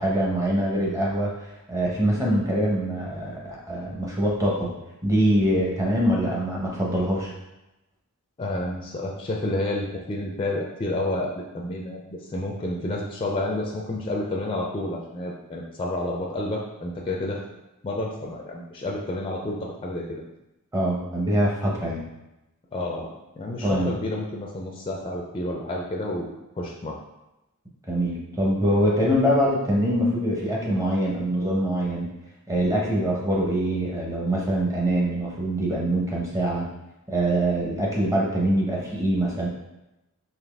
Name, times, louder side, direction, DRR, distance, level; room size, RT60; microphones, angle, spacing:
voice 1, 0.0-4.7 5.0-7.3 20.7-22.0 23.6-24.0 27.9-32.1 32.5-36.7 37.1-39.5, right 1 dB, 15° right, -3 dB, 0.8 m, -24 dB
voice 2, 8.4-17.4 17.8-20.2 22.7-23.1 23.4-26.3 26.6-27.0, left 1 dB, 25° left, -1 dB, 0.4 m, -30 dB
4.0 x 2.7 x 3.4 m, 0.95 s
head